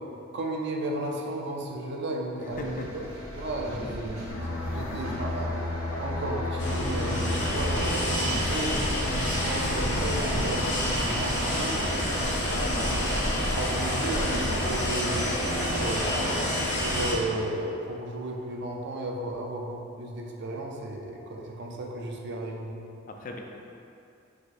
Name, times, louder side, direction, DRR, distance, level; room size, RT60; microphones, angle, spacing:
voice 1, 0.3-2.8 3.3-4.2 4.7-8.8 9.1-11.8 12.8-12.9 13.5-16.4 16.8-22.8, right 1 dB, 60° right, 0 dB, 0.5 m, -34 dB
voice 2, 2.4-2.9 12.4-13.0 23.1-23.4, left 3 dB, 40° left, 2 dB, 0.4 m, -38 dB
sound 1, 2.5-16.5, equal, 75° right, 1.2 m, -38 dB
sound 2, 4.3-9.7 10.0-10.3, left 2 dB, 85° left, 0.7 m, -33 dB
sound 3, 6.6-17.1, equal, 65° left, 1.0 m, -28 dB
4.7 x 3.8 x 2.5 m, 2.6 s
head